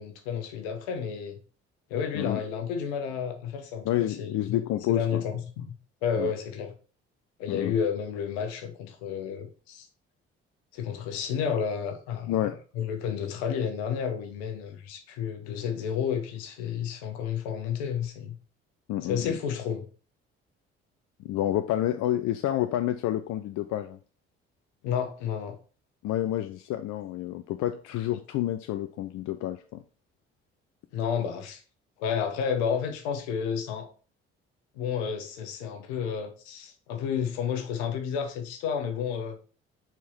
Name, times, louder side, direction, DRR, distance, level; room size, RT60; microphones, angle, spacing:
voice 1, 0.0-1.4 1.9-4.6 4.9-5.7 6.0-6.7 7.4-9.9 10.7-18.3 19.0-19.8 24.8-25.6 30.9-31.6 32.0-33.9 34.7-39.4, left 7 dB, 75° left, 1.2 m, -31 dB
voice 2, 3.8-5.2 6.2-6.3 7.5-7.7 12.3-12.6 18.9-19.4 21.2-24.0 26.0-29.8, left 13 dB, 60° left, 0.6 m, -29 dB
4.6 x 4.5 x 5.6 m
hypercardioid pair, 45°, 32 cm